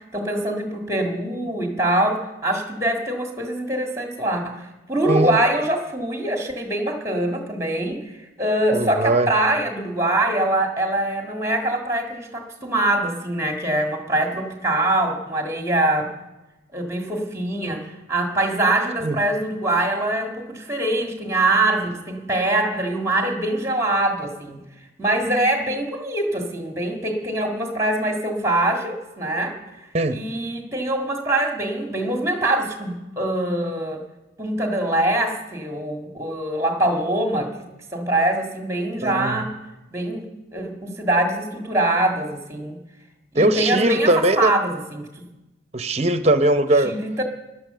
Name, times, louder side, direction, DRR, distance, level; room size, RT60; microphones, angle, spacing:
voice 1, 0.0-16.1 16.7-24.6 25.0-29.6 30.1-34.0 34.4-37.5 37.9-39.5 39.9-40.3 40.5-42.8 43.3-45.1 46.8-47.2, right 1 dB, 15° right, 2 dB, 1.9 m, -23 dB
voice 2, 5.1-5.4 8.7-9.3 19.0-19.2 29.9-30.2 39.0-39.4 43.4-44.5 45.7-46.9, right 1 dB, 35° right, 10 dB, 0.8 m, -20 dB
16.5 x 12.0 x 6.8 m, 1.0 s
head